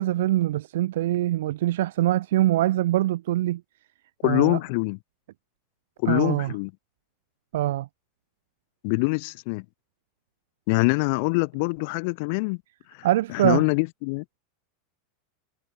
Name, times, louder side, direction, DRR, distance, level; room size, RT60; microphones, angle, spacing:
voice 1, 0.0-3.6 4.2-4.6 6.1-6.5 7.5-7.9 13.0-13.6, right 15 dB, 80° right, 6.2 m, -23 dB
voice 2, 4.2-5.0 6.0-6.7 8.8-9.6 10.7-12.6 12.9-13.1 13.3-14.2, left 31 dB, 55° left, 6.7 m, -24 dB
supercardioid pair, 140°, 0 cm